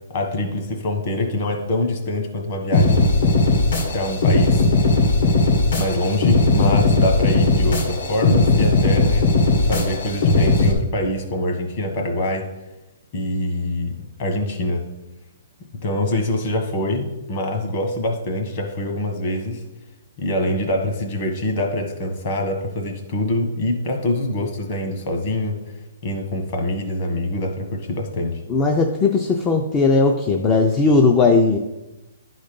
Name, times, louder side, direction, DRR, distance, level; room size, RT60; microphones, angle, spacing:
voice 1, 0.1-3.1 3.9-4.6 5.7-9.3 9.6-12.5 13.1-14.8 15.8-19.6 20.2-25.6 26.0-28.4, left 1 dB, 40° left, 3 dB, 1.4 m, -24 dB
sound 1, 2.7-10.7, left 2 dB, 65° left, 1.8 m, -18 dB
voice 2, 28.5-31.6, left 3 dB, 15° left, 3 dB, 0.4 m, -17 dB
11.0 x 4.0 x 5.2 m, 1.0 s
hypercardioid pair, 165°, 0 cm